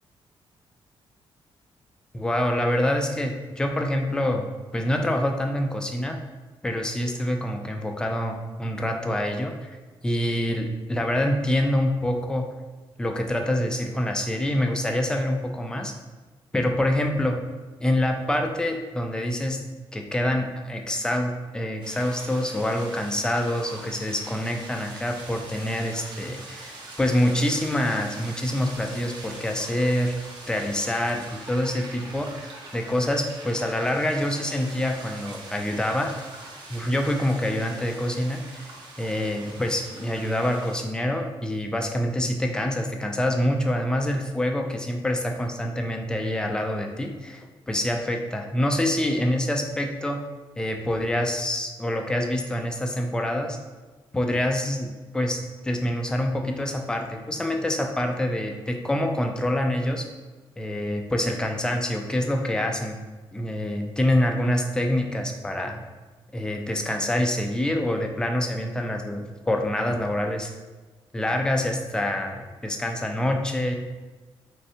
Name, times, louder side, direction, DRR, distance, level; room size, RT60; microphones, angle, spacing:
voice 1, 2.1-4.4 4.7-6.2 6.6-9.8 10.0-12.5 13.0-15.9 16.5-17.4 17.8-19.6 19.9-30.1 30.5-36.1 36.7-38.7 39.0-50.2 50.6-53.6 54.1-60.0 60.6-63.0 63.3-65.8 66.3-70.5 71.1-73.7, left 1 dB, 10° left, 3 dB, 0.3 m, -26 dB
sound 1, 21.8-40.8, right 2 dB, 50° right, 0.8 m, -43 dB
3.5 x 3.2 x 2.7 m, 1.3 s
cardioid pair, 140°, 10 cm